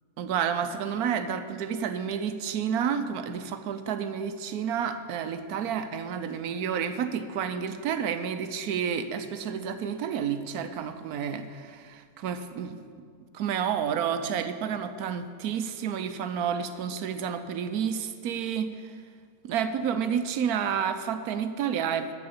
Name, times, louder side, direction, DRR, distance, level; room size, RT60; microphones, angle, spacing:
voice 1, 0.2-12.8 13.3-18.9 19.4-22.1, right 7 dB, 85° right, 10 dB, 1.2 m, -30 dB
13.0 x 4.8 x 8.7 m, 2.1 s
omnidirectional pair, 1.6 m